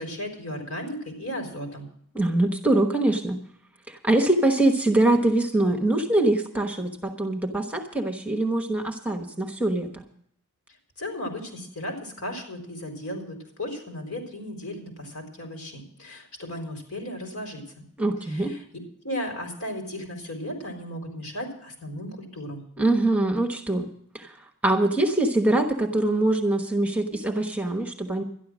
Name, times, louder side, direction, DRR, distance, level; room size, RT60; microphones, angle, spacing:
voice 1, 0.0-1.9 11.0-17.8 18.2-18.6 19.0-22.6, left 1 dB, 75° left, 3 dB, 4.3 m, -35 dB
voice 2, 2.1-3.4 3.9-10.0 18.0-18.5 22.8-23.9 24.1-24.4 24.6-28.2, right 2 dB, 5° right, 5 dB, 1.1 m, -23 dB
12.5 x 11.0 x 6.2 m, 0.67 s
head